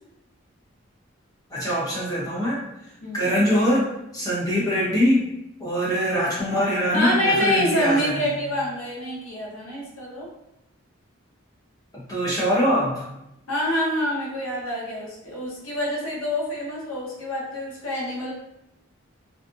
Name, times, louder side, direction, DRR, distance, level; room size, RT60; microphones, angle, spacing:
voice 1, 1.5-2.6 3.1-5.3 5.6-8.3 11.9-13.0, equal, 15° left, -7 dB, 0.7 m, -23 dB
voice 2, 6.9-10.3 13.5-18.3, left 1 dB, 90° left, -4 dB, 0.9 m, -26 dB
2.6 x 2.4 x 2.5 m, 0.84 s
head